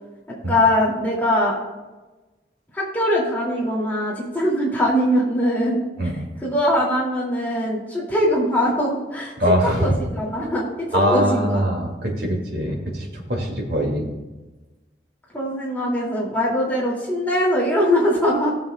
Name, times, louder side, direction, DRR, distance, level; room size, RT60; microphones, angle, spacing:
voice 1, 0.5-1.6 2.7-5.8 6.4-9.3 9.8-11.6 15.3-18.5, equal, 10° left, -5 dB, 2.3 m, -21 dB
voice 2, 9.4-9.9 10.9-14.1, equal, 60° right, 0 dB, 2.2 m, -22 dB
17.5 x 7.3 x 2.3 m, 1.1 s
head